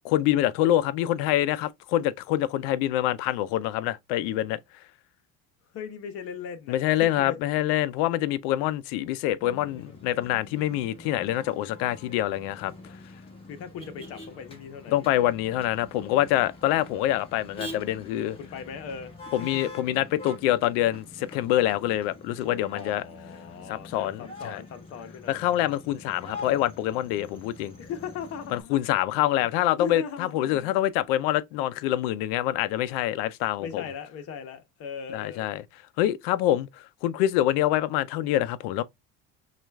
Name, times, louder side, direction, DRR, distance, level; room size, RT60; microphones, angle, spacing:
voice 1, 0.0-4.6 6.7-12.7 14.9-18.4 19.3-23.0 23.7-24.6 25.3-27.7 28.5-33.8 35.1-35.6 36.0-38.8, left 13 dB, 85° left, 0.5 m, -26 dB
voice 2, 5.7-7.4 13.4-15.3 18.4-19.5 22.7-25.4 27.8-28.8 29.8-30.7 33.6-35.5, left 6 dB, 50° left, 0.9 m, -39 dB
Motor vehicle (road), 9.4-28.6, left 2 dB, 20° left, 1.4 m, -45 dB
6.0 x 2.4 x 2.2 m
cardioid pair, 140°, 30 cm